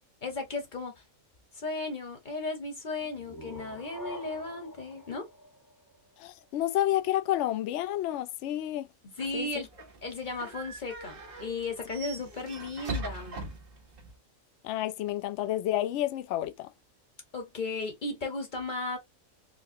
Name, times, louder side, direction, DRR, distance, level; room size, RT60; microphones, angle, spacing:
voice 1, 0.2-1.0 1.5-5.3 9.0-9.7 10.0-13.4 17.3-19.0, left 3 dB, 35° left, 1.2 m, -35 dB
sound 1, 3.0-6.5, equal, 15° left, 0.9 m, -46 dB
voice 2, 6.2-8.9 9.3-9.5 14.6-16.7, left 13 dB, 65° left, 0.8 m, -30 dB
sound 2, 9.2-14.2, right 2 dB, 45° right, 1.0 m, -41 dB
4.4 x 2.1 x 2.6 m
omnidirectional pair, 1.4 m